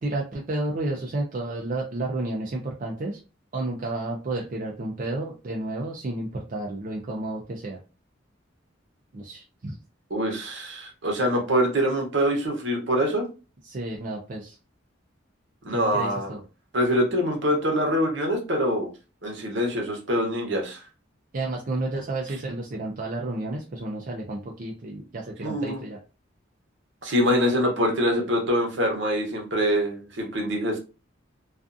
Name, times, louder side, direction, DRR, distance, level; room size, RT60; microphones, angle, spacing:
voice 1, 0.0-3.2 3.5-7.8 9.1-9.8 13.6-14.6 15.7-16.4 21.3-26.0, right 2 dB, 45° right, -1 dB, 0.4 m, -31 dB
voice 2, 10.1-13.2 15.6-16.3 16.7-18.9 19.2-20.8 25.4-25.8 27.0-30.8, equal, 65° right, 1 dB, 0.9 m, -24 dB
2.4 x 2.4 x 2.5 m, 0.32 s
head